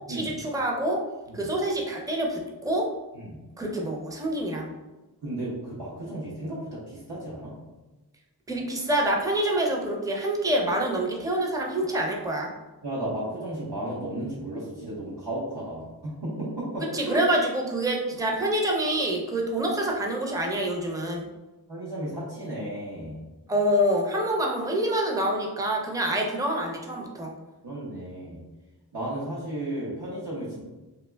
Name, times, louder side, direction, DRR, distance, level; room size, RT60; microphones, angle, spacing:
voice 1, 0.1-1.0 1.3-2.9 3.6-4.7 8.5-12.5 16.9-21.3 23.5-27.3, right 1 dB, 10° right, 0 dB, 0.5 m, -26 dB
voice 2, 5.2-7.5 12.8-17.2 21.7-23.2 27.6-28.4 28.9-30.6, right 1 dB, 75° right, -7 dB, 0.8 m, -34 dB
3.3 x 2.4 x 2.2 m, 1.1 s
wide cardioid pair, 50°, 41 cm